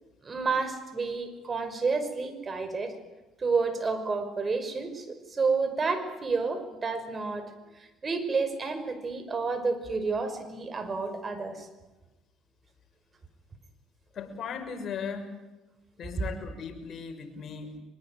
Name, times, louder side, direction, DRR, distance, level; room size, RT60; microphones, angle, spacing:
voice 1, 0.2-3.0 3.4-11.7 16.2-16.3, right 4 dB, 35° right, 10 dB, 5.7 m, -30 dB
voice 2, 14.1-15.4 16.0-17.8, left 6 dB, 50° left, 4 dB, 6.6 m, -37 dB
24.5 x 22.5 x 9.3 m, 1.1 s
supercardioid pair, 70°, 0 cm